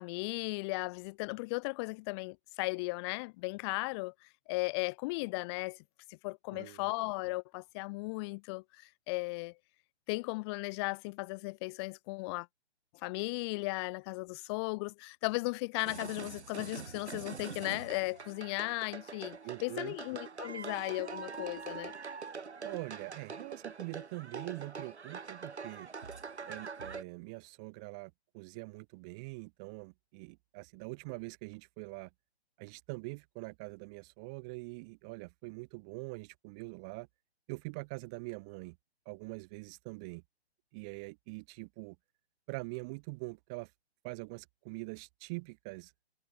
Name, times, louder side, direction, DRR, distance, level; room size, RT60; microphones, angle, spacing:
voice 1, 0.0-4.1 4.5-5.8 6.1-9.5 10.1-12.5 13.0-21.9, left 27 dB, 25° left, 3.9 m, -36 dB
voice 2, 6.5-6.8 19.4-20.0 22.6-25.9 26.5-32.1 32.6-37.1 37.5-38.8 39.1-40.2 40.7-42.0 42.5-43.7 44.0-45.9, right 30 dB, 5° right, 0.5 m, -44 dB
sound 1, 15.9-27.0, right 5 dB, 75° right, 2.3 m, -44 dB
figure-of-eight pair, 145°, 34 cm